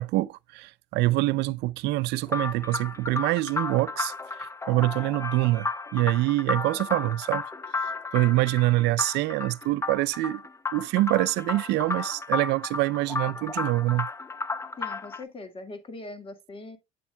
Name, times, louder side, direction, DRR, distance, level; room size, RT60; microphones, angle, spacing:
voice 1, 0.0-7.4 7.8-10.4 10.7-14.1, right 18 dB, 85° right, 0.5 m, -25 dB
sound 1, 2.3-15.2, left 3 dB, 15° left, 0.6 m, -33 dB
voice 2, 14.8-16.8, left 2 dB, 35° left, 1.8 m, -41 dB
8.5 x 7.1 x 2.2 m
cardioid pair, 110°, 17 cm